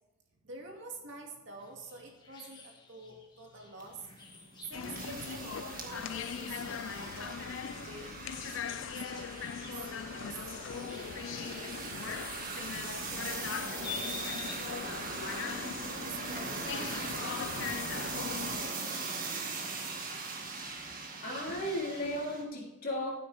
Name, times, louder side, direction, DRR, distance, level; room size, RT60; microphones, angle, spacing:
voice 1, 0.4-4.2 4.7-7.4 7.7-11.1 11.4-12.3 12.6-18.2 20.9-21.7, right 2 dB, 60° right, 0 dB, 2.5 m, -49 dB
sound 1, 1.6-17.7, left 5 dB, 20° left, 1.7 m, -51 dB
sound 2, 3.8-22.4, right 3 dB, 40° right, 1.9 m, -40 dB
sound 3, 4.7-18.7, left 8 dB, 65° left, 0.3 m, -41 dB
voice 2, 21.2-23.1, left 1 dB, 45° left, -3 dB, 3.5 m, -35 dB
12.5 x 9.9 x 3.5 m, 1.1 s
head